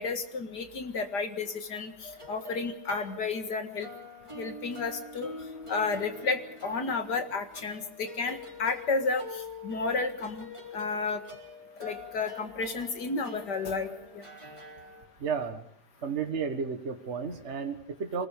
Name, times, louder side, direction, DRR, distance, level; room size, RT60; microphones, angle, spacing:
voice 1, 0.0-3.9 4.4-5.3 5.7-10.5 10.7-11.2 11.8-13.9, left 4 dB, 75° left, 7 dB, 2.5 m, -32 dB
sound 1, 2.0-15.1, left 3 dB, 15° right, 3.8 m, -45 dB
voice 2, 15.2-15.6 16.0-18.3, right 6 dB, 45° right, 6 dB, 1.7 m, -32 dB
25.5 x 20.5 x 5.1 m, 0.63 s
omnidirectional pair, 1.8 m